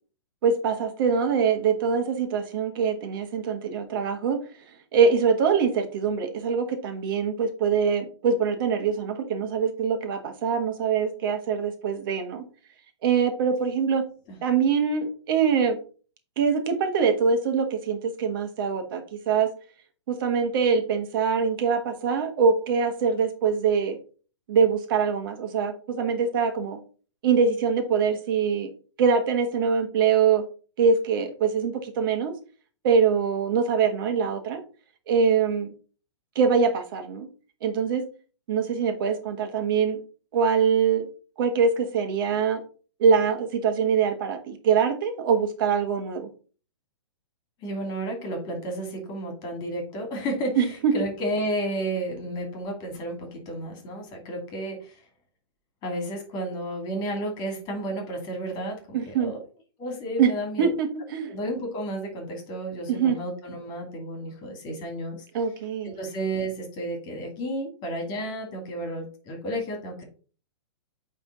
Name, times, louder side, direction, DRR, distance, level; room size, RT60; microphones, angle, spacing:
voice 1, 0.4-4.4 4.9-12.4 13.0-14.0 14.4-15.8 16.4-19.5 20.1-24.0 24.5-26.8 27.2-28.7 29.0-30.4 30.8-32.3 32.8-34.6 35.1-35.7 36.3-37.3 37.6-38.0 38.5-40.0 40.3-41.1 41.4-42.6 43.0-46.3 50.6-50.9 58.9-59.3 60.2-60.3 60.6-61.3 62.9-63.2 65.3-65.9, right 6 dB, 50° right, 5 dB, 1.3 m, -23 dB
voice 2, 47.6-55.0 55.8-59.4 59.8-60.7 61.2-65.2 65.8-70.0, right 1 dB, 30° left, 3 dB, 2.5 m, -32 dB
8.9 x 3.4 x 3.8 m, 0.38 s
figure-of-eight pair, 115°, 15 cm